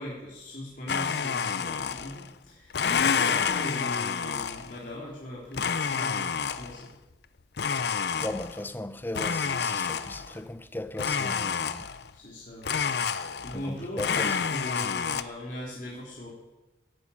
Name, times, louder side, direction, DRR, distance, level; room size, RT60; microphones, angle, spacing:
voice 1, 0.0-6.9 12.1-12.8 13.4-16.3, left 1 dB, 45° left, 3.6 m, -39 dB
Domestic sounds home sounds, 0.9-2.3 2.7-4.8 5.5-6.8 7.6-8.7 9.1-10.4 11.0-12.1 12.6-13.7 14.0-15.2, left 6 dB, 60° left, 0.6 m, -29 dB
voice 2, 8.2-11.9 13.5-14.3, left 1 dB, 10° left, 0.6 m, -37 dB
11.5 x 11.0 x 8.6 m
head